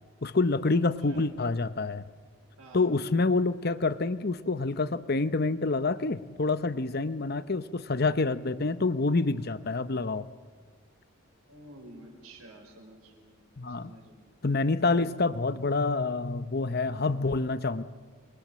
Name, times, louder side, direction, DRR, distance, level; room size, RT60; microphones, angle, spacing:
voice 1, 0.2-2.0 2.7-10.3 13.6-13.9 14.4-17.8, left 3 dB, 45° left, 13 dB, 0.8 m, -27 dB
voice 2, 2.6-2.9 7.3-7.5 11.5-13.4 13.7-14.3, right 1 dB, 90° right, 1 dB, 5.8 m, -50 dB
27.0 x 22.5 x 7.4 m, 1.5 s
head